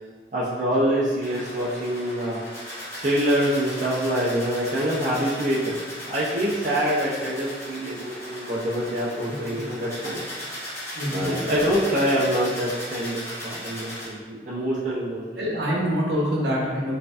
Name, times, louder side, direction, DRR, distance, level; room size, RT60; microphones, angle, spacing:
voice 1, 0.3-2.4 3.0-5.8 6.1-10.2 11.1-15.4, equal, 45° right, -7 dB, 0.5 m, -25 dB
sound 1, 1.2-14.0, equal, 15° left, 0.9 m, -37 dB
voice 2, 9.3-9.6 10.9-11.3 15.4-16.9, equal, 75° right, -4 dB, 0.8 m, -26 dB
4.3 x 2.5 x 2.4 m, 1.5 s
head